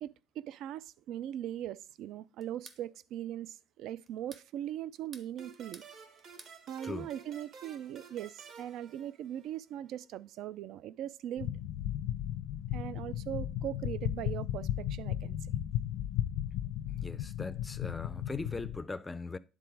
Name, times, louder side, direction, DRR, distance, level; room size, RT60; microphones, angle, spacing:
voice 1, 0.0-5.8 6.7-11.5 12.7-15.4, right 11 dB, 65° right, 0.4 m, -40 dB
sound 1, 2.4-2.8 4.1-4.5 4.9-5.9 6.2-6.6, right 3 dB, 30° right, 0.9 m, -53 dB
sound 2, 5.4-9.7, right 5 dB, 50° right, 1.2 m, -53 dB
sound 3, 11.4-18.8, left 12 dB, 90° left, 0.7 m, -35 dB
voice 2, 16.9-19.4, left 3 dB, 15° left, 0.4 m, -40 dB
9.7 x 3.9 x 4.7 m
cardioid pair, 140°, 0 cm